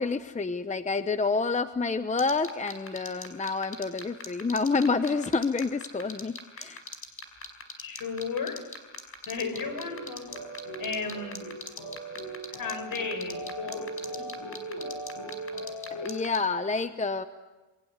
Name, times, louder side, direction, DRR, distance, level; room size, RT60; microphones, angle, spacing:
voice 1, 0.0-6.8 15.9-17.2, left 4 dB, 20° left, 10 dB, 0.9 m, -28 dB
sound 1, 2.2-16.4, left 4 dB, 35° left, 4.9 m, -39 dB
voice 2, 7.8-8.7 9.3-10.3 10.8-11.4 12.5-14.4 14.7-14.9, left 5 dB, 60° left, 9 dB, 5.0 m, -35 dB
sound 2, 9.3-16.2, right 2 dB, 80° left, 7.9 m, -39 dB
29.0 x 23.0 x 8.2 m, 1.2 s
cardioid pair, 125°, 39 cm